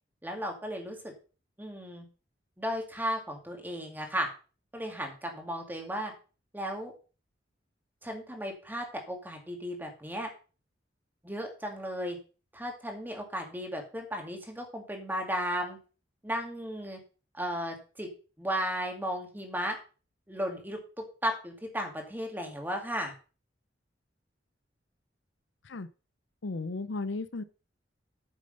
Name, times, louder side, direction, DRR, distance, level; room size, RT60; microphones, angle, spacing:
voice 1, 0.2-1.1 1.6-2.1 2.6-4.3 4.7-6.1 6.5-6.9 8.0-10.3 11.2-12.2 12.5-15.8 16.2-17.0 17.3-18.1 18.4-19.8 20.3-20.8 21.2-23.1, equal, 10° right, 3 dB, 2.3 m, -35 dB
voice 2, 26.4-27.4, left 3 dB, 80° left, 14 dB, 0.7 m, -35 dB
9.0 x 6.9 x 5.4 m, 0.35 s
head